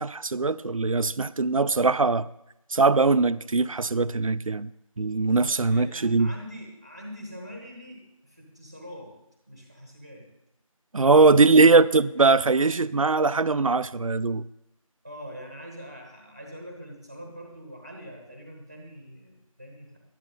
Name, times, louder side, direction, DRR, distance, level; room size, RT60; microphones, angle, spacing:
voice 1, 0.0-2.3 2.7-4.7 5.0-6.3 10.9-14.4, right 3 dB, 70° right, 0.4 m, -21 dB
voice 2, 5.6-9.1 9.5-10.3 10.9-11.6 15.0-20.0, equal, 10° right, 1.0 m, -43 dB
11.5 x 11.0 x 3.9 m
figure-of-eight pair, 175°, 18 cm